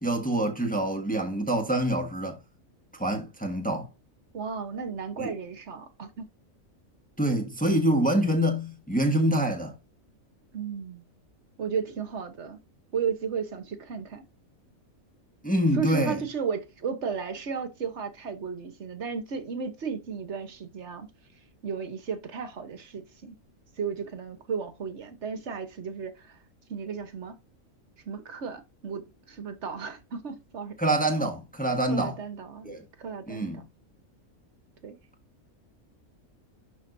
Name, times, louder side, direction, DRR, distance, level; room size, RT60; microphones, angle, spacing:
voice 1, 0.0-2.4 2.9-3.9 5.2-5.3 7.2-9.7 15.4-16.2 30.8-32.1 32.6-32.8 33.3-33.6, right 1 dB, 5° left, 1.4 m, -26 dB
voice 2, 4.3-6.3 10.5-11.1 11.6-12.6 12.9-14.2 15.7-21.1 21.6-23.4 23.8-26.4 26.7-27.4 28.1-30.8 31.8-33.7 34.8-35.0, right 6 dB, 55° right, 1.4 m, -34 dB
11.5 x 4.5 x 2.7 m
omnidirectional pair, 1.4 m